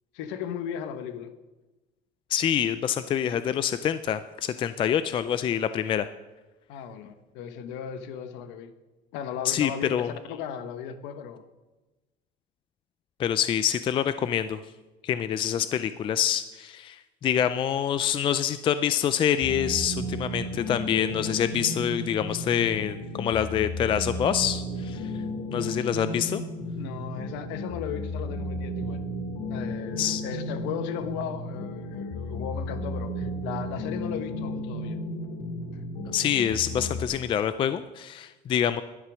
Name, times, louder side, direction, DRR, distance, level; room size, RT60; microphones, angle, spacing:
voice 1, 0.1-1.3 6.7-8.7 9.1-11.4 25.9-26.1 26.8-29.1 29.5-35.0 35.7-35.8, left 8 dB, 85° left, 10 dB, 1.2 m, -36 dB
voice 2, 2.3-6.1 9.4-10.1 13.2-14.6 15.0-25.1 25.5-26.4 30.0-30.2 36.1-38.8, left 9 dB, 30° left, 12 dB, 0.4 m, -26 dB
sound 1, 19.4-37.0, left 1 dB, 65° left, 2.2 m, -34 dB
11.5 x 10.5 x 6.2 m, 1.1 s
cardioid pair, 160°, 18 cm